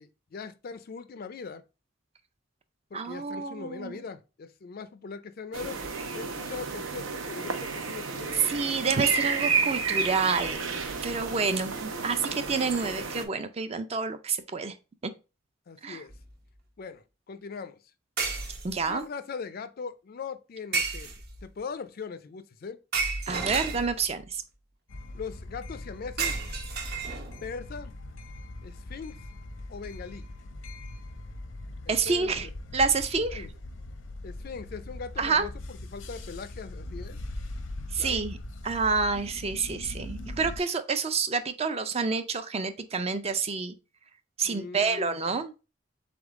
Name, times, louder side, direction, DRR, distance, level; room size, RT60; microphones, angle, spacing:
voice 1, 0.0-1.6 2.9-5.8 6.1-8.6 15.7-16.1 16.8-17.8 18.9-22.8 25.1-26.4 27.4-27.9 28.6-29.2 29.7-30.3 31.9-32.5 33.3-33.5 34.2-37.2 38.0-38.3 44.4-45.4, left 5 dB, 50° left, 0.4 m, -40 dB
voice 2, 2.9-4.0 8.4-10.6 11.0-14.7 15.8-16.0 18.6-19.0 23.3-24.4 31.9-32.5 32.7-33.5 35.2-35.5 37.9-38.4 38.6-43.7 44.4-45.5, right 4 dB, 30° right, 0.4 m, -28 dB
sound 1, 5.5-13.2, right 5 dB, 85° right, 0.7 m, -31 dB
sound 2, 16.1-16.3 18.2-19.0 20.7-21.5 22.9-24.2 26.2-27.5, right 4 dB, 55° right, 0.9 m, -32 dB
sound 3, 24.9-40.6, left 1 dB, 85° left, 0.7 m, -41 dB
3.9 x 3.5 x 3.5 m
head